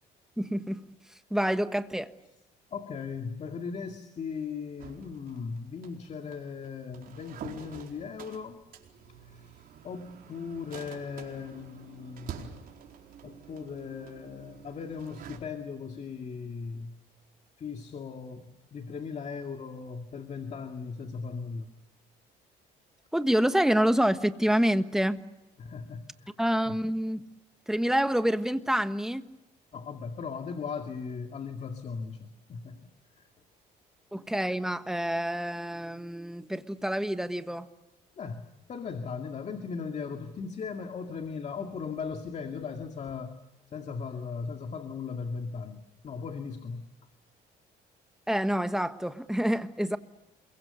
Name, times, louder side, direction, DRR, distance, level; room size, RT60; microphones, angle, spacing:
voice 1, 0.4-0.8 1.3-2.1 23.1-25.2 26.4-27.2 27.7-29.2 34.1-37.7 48.3-50.0, equal, 5° right, 1.4 m, -27 dB
voice 2, 2.7-8.6 9.3-12.5 13.2-17.0 17.6-21.7 25.6-26.3 26.7-26.8 29.7-32.9 33.2-33.3 38.2-43.4 43.7-46.9, left 5 dB, 40° left, 2.3 m, -38 dB
sound 1, 4.8-15.4, right 8 dB, 60° right, 4.5 m, -47 dB
28.5 x 23.0 x 6.9 m
cardioid pair, 110°, 17 cm